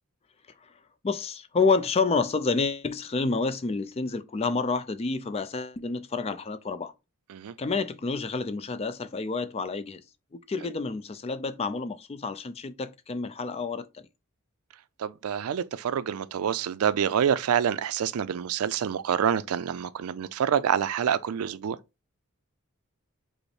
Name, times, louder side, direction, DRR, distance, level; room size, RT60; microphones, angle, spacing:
voice 1, 1.0-6.9 7.6-10.0 10.3-13.9, left 4 dB, 30° left, 0.4 m, -29 dB
voice 2, 15.0-21.8, right 8 dB, 85° right, 0.4 m, -27 dB
5.1 x 2.0 x 4.7 m
head